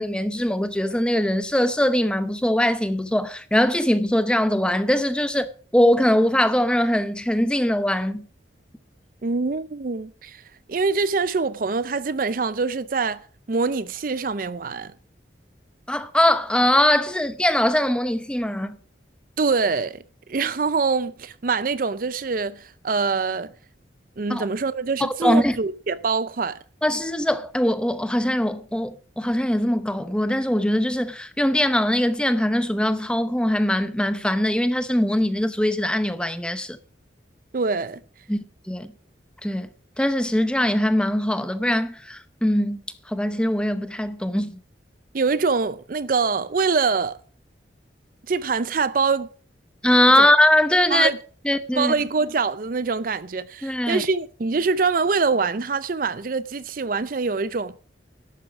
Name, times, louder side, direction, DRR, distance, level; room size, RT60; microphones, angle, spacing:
voice 1, 0.0-5.5 5.7-8.3 15.9-18.8 24.3-24.5 25.0-25.6 26.8-36.8 38.3-38.4 38.7-38.9 39.4-39.7 40.0-44.6 49.8-51.1 51.4-51.9 53.6-54.0, left 1 dB, 5° left, 0.7 m, -21 dB
voice 2, 9.2-10.4 10.7-13.2 13.5-14.9 19.4-20.0 20.3-23.5 24.2-26.6 37.5-38.0 45.1-47.2 48.3-49.3 50.2-50.3 50.9-51.2 51.8-57.7, right 4 dB, 50° right, 0.5 m, -24 dB
11.5 x 8.2 x 5.9 m
head